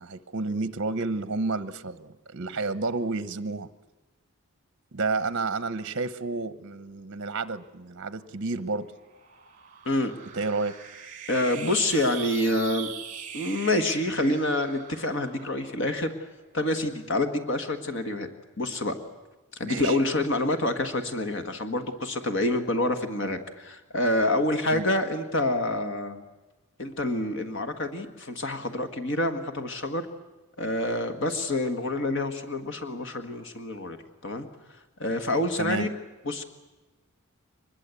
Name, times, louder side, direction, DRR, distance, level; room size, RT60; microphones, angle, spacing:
voice 1, 0.0-3.7 4.9-8.9 10.3-10.7 19.6-20.0 24.7-24.8 35.6-35.9, right 3 dB, 55° right, 0.8 m, -30 dB
sound 1, 8.2-16.9, right 8 dB, 35° right, 2.5 m, -42 dB
voice 2, 11.3-12.9 13.3-16.1 16.5-18.3 18.6-18.9 19.5-26.2 26.8-30.1 30.6-34.0 34.2-34.5 35.0-35.9 36.2-36.4, left 1 dB, 60° left, 1.6 m, -27 dB
23.5 x 21.0 x 8.3 m
head